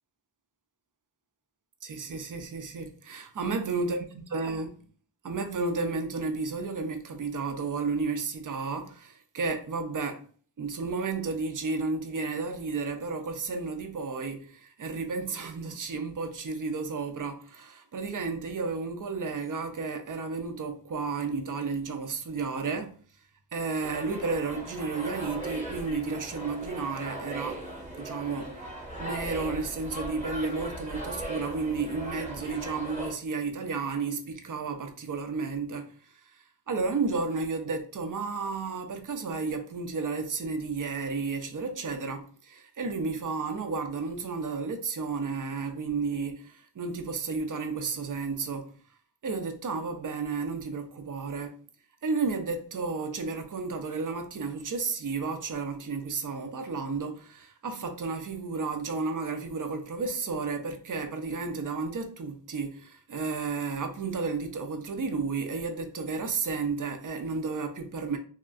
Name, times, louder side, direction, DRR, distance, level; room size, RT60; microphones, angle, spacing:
voice 1, 1.8-4.8 5.2-10.2 10.6-23.0 23.5-27.6 28.0-28.6 29.0-35.9 36.2-48.7 49.2-51.6 52.0-68.2, right 4 dB, 50° right, 0.5 m, -32 dB
sound 1, 23.8-33.1, right 1 dB, 15° right, 0.8 m, -39 dB
2.8 x 2.3 x 2.5 m
wide cardioid pair, 80°, 43 cm